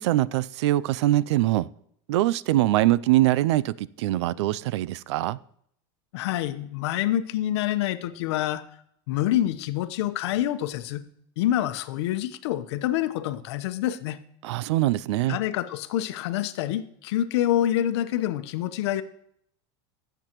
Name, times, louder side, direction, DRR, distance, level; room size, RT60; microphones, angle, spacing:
voice 1, 0.0-1.7 2.1-5.4 14.4-15.4, right 15 dB, 85° right, 21 dB, 0.4 m, -23 dB
voice 2, 6.1-8.6 9.1-11.0 11.4-14.2 15.3-19.0, left 12 dB, 75° left, 10 dB, 0.9 m, -27 dB
18.5 x 8.0 x 3.0 m, 0.69 s
supercardioid pair, 155°, 14 cm